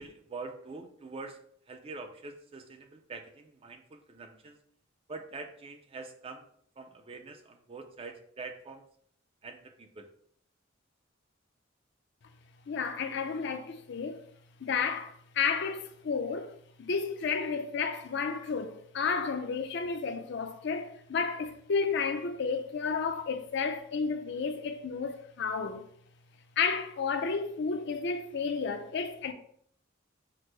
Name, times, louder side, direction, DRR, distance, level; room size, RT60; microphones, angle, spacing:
voice 1, 0.0-4.6 5.1-6.5 6.8-8.9 9.4-10.1, right 3 dB, 30° right, 0.4 m, -45 dB
voice 2, 12.7-14.3 14.6-25.8 26.6-29.3, left 5 dB, 60° left, 0.4 m, -32 dB
5.9 x 2.0 x 3.1 m
head